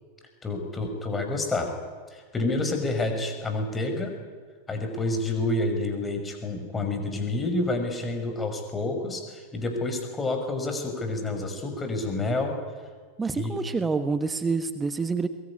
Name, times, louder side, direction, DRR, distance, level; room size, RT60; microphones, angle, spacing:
voice 1, 0.4-1.7 2.1-4.1 4.7-12.5 13.3-13.6, left 2 dB, 15° left, 5 dB, 5.6 m, -29 dB
voice 2, 13.2-15.3, right 4 dB, 15° right, 11 dB, 1.2 m, -27 dB
22.0 x 21.5 x 9.9 m, 1.6 s
figure-of-eight pair, 90°, 0 cm